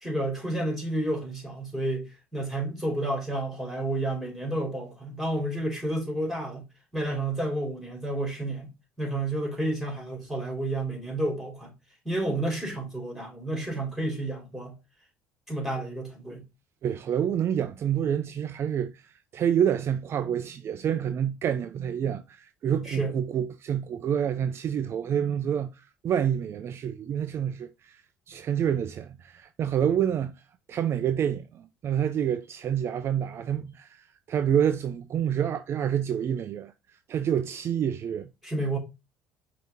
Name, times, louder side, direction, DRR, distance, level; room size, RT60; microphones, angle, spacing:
voice 1, 0.0-6.6 6.9-8.7 9.0-11.7 12.0-14.8 15.5-16.4 22.8-23.1 38.4-38.8, right 1 dB, ahead, 2.9 m, -30 dB
voice 2, 16.8-28.0 28.3-30.3 30.7-36.7 37.1-38.3, right 9 dB, 50° right, 0.4 m, -28 dB
5.4 x 2.8 x 3.5 m
hypercardioid pair, 65°, 6 cm